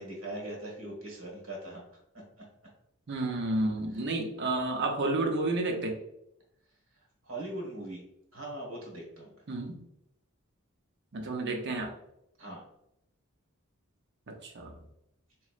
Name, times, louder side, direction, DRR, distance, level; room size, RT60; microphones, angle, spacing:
voice 1, 0.0-2.4 7.2-8.0 8.3-9.3 12.4-12.6, right 1 dB, 70° right, -2 dB, 1.4 m, -41 dB
voice 2, 3.1-6.0 9.5-9.8 11.1-11.9 14.3-14.7, right 2 dB, 55° right, 3 dB, 0.7 m, -31 dB
4.2 x 3.0 x 2.4 m, 0.82 s
head